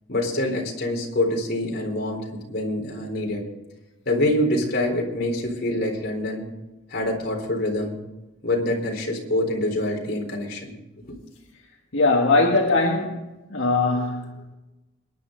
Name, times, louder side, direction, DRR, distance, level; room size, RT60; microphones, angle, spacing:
voice 1, 0.1-3.4 4.1-6.5 6.9-8.0 8.4-10.8 11.1-11.2, left 1 dB, 55° left, 0 dB, 4.0 m, -25 dB
voice 2, 11.9-14.4, left 3 dB, 75° left, 0 dB, 1.7 m, -21 dB
22.5 x 10.5 x 3.9 m, 1.0 s
head